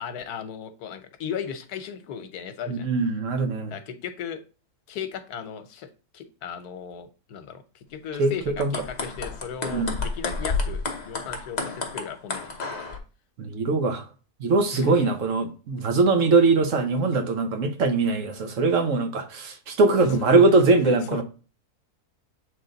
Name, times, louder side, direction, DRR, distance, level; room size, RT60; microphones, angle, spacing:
voice 1, 0.0-2.9 3.6-4.4 4.9-5.9 6.1-7.6 7.9-12.9 14.7-15.1 20.3-20.4 20.8-21.2, left 7 dB, 85° left, 1.3 m, -36 dB
voice 2, 2.7-3.7 8.2-8.3 8.6-8.7 9.7-10.0 13.4-14.0 14.4-21.2, right 3 dB, 60° right, 1.3 m, -21 dB
sound 1, 8.5-13.0, left 4 dB, 35° left, 0.8 m, -31 dB
7.7 x 3.3 x 3.9 m
omnidirectional pair, 1.6 m